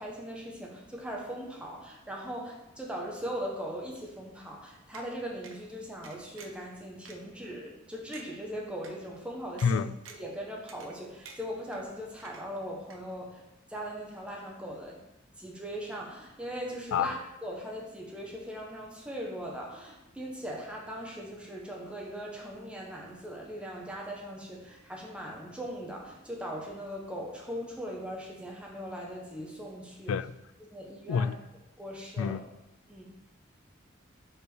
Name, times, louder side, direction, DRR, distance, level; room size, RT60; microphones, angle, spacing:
voice 1, 0.0-9.8 10.1-13.4 13.7-15.0 15.4-30.1 30.7-31.3 31.8-32.4 32.9-33.0, equal, 5° right, -2 dB, 1.4 m, -39 dB
sound 1, 4.9-5.1 5.4-5.6 6.0-6.6 7.0-7.2 7.7-7.8 8.1-8.3 8.8-8.9 9.6-9.7 10.0-10.3 10.7-11.0 11.2-11.8 12.2-12.6 12.9-13.0, right 5 dB, 80° right, 0.9 m, -49 dB
voice 2, 9.6-9.9 16.9-17.1 30.1-30.4 31.1-31.4 32.2-32.4, left 6 dB, 85° left, 16 dB, 0.3 m, -27 dB
5.4 x 4.6 x 6.3 m, 0.92 s
head